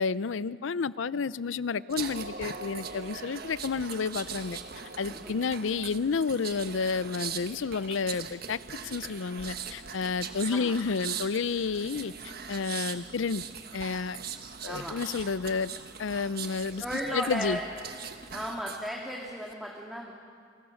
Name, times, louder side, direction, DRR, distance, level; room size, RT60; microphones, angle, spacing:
voice 1, 0.0-4.6 5.0-13.4 13.7-14.2 14.6-15.7 16.0-16.8 17.1-17.6, left 5 dB, 85° left, 18 dB, 0.5 m, -30 dB
sound 1, 1.9-18.9 19.3-19.5, right 6 dB, 55° right, 1.4 m, -40 dB
voice 2, 5.0-5.4 10.5-10.8 14.7-15.0 16.8-17.6 18.3-20.1, equal, ahead, -2 dB, 2.0 m, -35 dB
29.0 x 21.0 x 6.4 m, 2.2 s
head